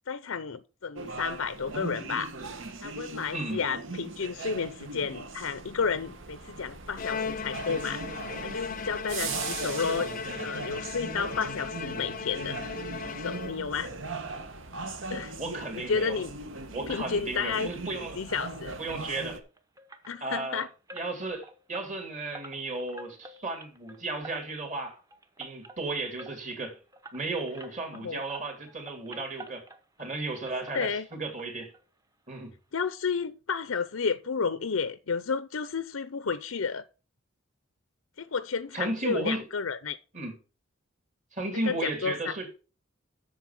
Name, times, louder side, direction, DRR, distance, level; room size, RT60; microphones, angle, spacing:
voice 1, 0.1-2.3 2.8-8.0 8.4-10.1 10.4-12.7 13.0-13.9 15.1-15.3 15.9-16.4 16.9-17.7 18.2-18.7 20.1-20.7 27.9-28.2 30.7-31.1 32.7-36.9 38.2-40.0 41.7-42.4, left 5 dB, 80° left, 0.6 m, -31 dB
sound 1, 1.0-19.4, right 3 dB, 70° right, 1.3 m, -39 dB
voice 2, 3.3-3.6 15.4-16.2 16.7-18.2 18.8-19.4 20.2-20.7 20.9-25.0 25.4-26.8 27.1-29.6 30.0-31.7 32.3-32.5 38.7-39.4 40.1-40.3 41.3-42.5, right 2 dB, 35° right, 2.9 m, -34 dB
Bowed string instrument, 7.0-13.9, left 5 dB, 40° left, 0.6 m, -37 dB
sound 2, 18.9-28.0 28.3-30.1 30.3-31.4 31.7-31.8 32.3-32.4 32.7-32.8, right 2 dB, 15° right, 0.9 m, -49 dB
8.2 x 6.8 x 5.9 m
head